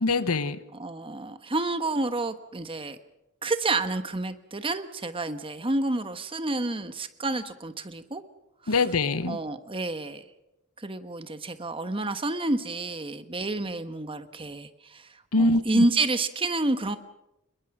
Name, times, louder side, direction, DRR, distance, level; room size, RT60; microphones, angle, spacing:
voice 1, 0.0-0.6 8.7-9.4 15.3-15.8, left 3 dB, 80° left, 14 dB, 1.1 m, -24 dB
voice 2, 0.7-3.0 3.4-8.2 8.6-8.8 9.2-10.2 10.8-17.0, right 2 dB, 25° right, 10 dB, 1.2 m, -29 dB
26.5 x 21.5 x 6.0 m, 0.91 s
head